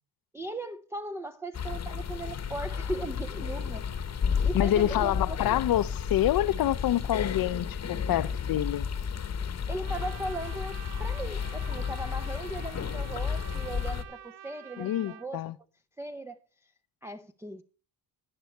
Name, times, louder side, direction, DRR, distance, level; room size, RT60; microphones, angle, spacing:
voice 1, 0.3-3.9 4.4-5.6 9.7-15.4 16.0-16.4 17.0-17.6, right 2 dB, 5° right, 0.5 m, -38 dB
sound 1, 1.5-14.0, left 6 dB, 40° left, 1.0 m, -32 dB
voice 2, 4.5-8.9 14.8-15.6, left 13 dB, 60° left, 0.6 m, -27 dB
Trumpet, 9.8-15.3, right 11 dB, 70° right, 0.7 m, -48 dB
10.0 x 10.0 x 4.4 m
cardioid pair, 95°, 41 cm